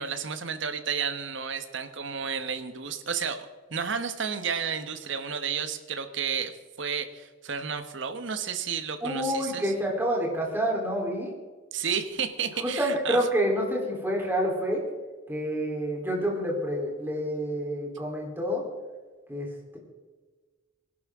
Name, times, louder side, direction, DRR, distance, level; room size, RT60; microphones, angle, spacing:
voice 1, 0.0-9.7 11.7-13.2, right 6 dB, 65° right, 9 dB, 1.2 m, -32 dB
voice 2, 9.0-11.3 12.6-14.8 15.3-18.6 19.3-19.5, equal, 10° right, -2 dB, 3.5 m, -28 dB
20.0 x 11.5 x 3.7 m, 1.4 s
head